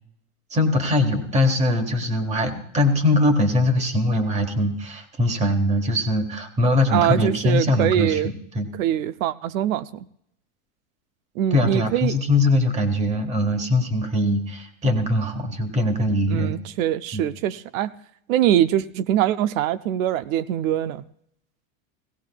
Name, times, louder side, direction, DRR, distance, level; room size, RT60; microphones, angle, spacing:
voice 1, 0.5-8.2 8.5-8.7 11.5-16.5 17.1-17.2, left 1 dB, 15° right, 8 dB, 1.2 m, -21 dB
voice 2, 6.9-8.3 8.8-10.1 11.4-12.1 16.3-17.9 18.3-21.0, right 11 dB, 85° right, 14 dB, 0.6 m, -23 dB
18.0 x 16.0 x 2.2 m, 0.72 s
supercardioid pair, 150°, 39 cm